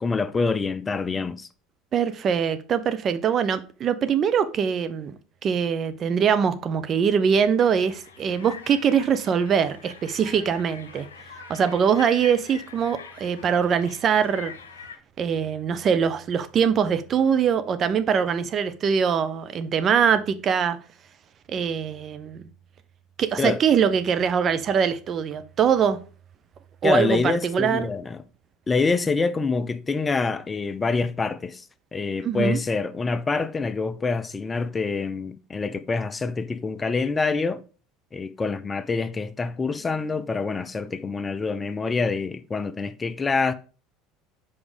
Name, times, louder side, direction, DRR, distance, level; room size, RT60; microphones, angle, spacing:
voice 1, 0.0-1.5 23.4-23.6 26.8-28.2 28.7-31.7 31.9-37.6 38.1-43.5, left 4 dB, 25° left, 0.5 m, -26 dB
voice 2, 1.9-11.1 11.5-14.5 15.2-20.8 21.5-22.4 23.2-26.0 26.8-27.9 32.2-32.6, right 7 dB, 40° right, 0.7 m, -23 dB
sound 1, 7.6-15.0, left 6 dB, 85° left, 0.8 m, -44 dB
5.2 x 4.8 x 5.0 m
hypercardioid pair, 75°, 0 cm